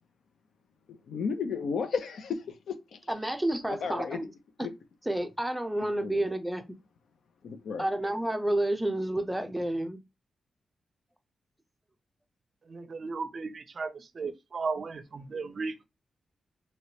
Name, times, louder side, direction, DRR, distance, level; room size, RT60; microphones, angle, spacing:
voice 1, 0.9-3.0 3.7-4.2 4.6-4.7 6.0-6.3 7.4-7.9, left 5 dB, 90° left, 0.6 m, -34 dB
voice 2, 3.1-4.3 4.6-4.7 5.1-6.6 7.8-10.0, right 1 dB, 5° right, 0.6 m, -30 dB
voice 3, 12.7-15.9, right 4 dB, 50° right, 0.5 m, -35 dB
3.2 x 2.9 x 2.8 m
wide cardioid pair, 105°, 0 cm